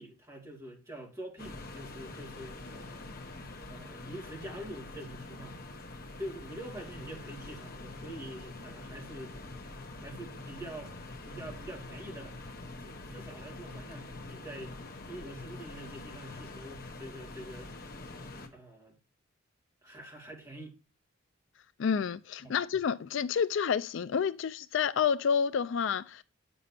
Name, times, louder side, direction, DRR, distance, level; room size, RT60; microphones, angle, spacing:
voice 1, 0.0-3.1 3.7-5.6 6.2-9.4 10.0-10.9 11.2-12.4 12.8-14.7 15.0-17.7 18.5-19.0 19.8-20.7 22.4-22.6, right 1 dB, 15° right, 2.1 m, -45 dB
sound 1, 1.4-18.5, left 2 dB, 45° left, 1.2 m, -45 dB
voice 2, 21.8-26.2, left 7 dB, 60° left, 0.3 m, -29 dB
8.4 x 6.9 x 2.7 m
head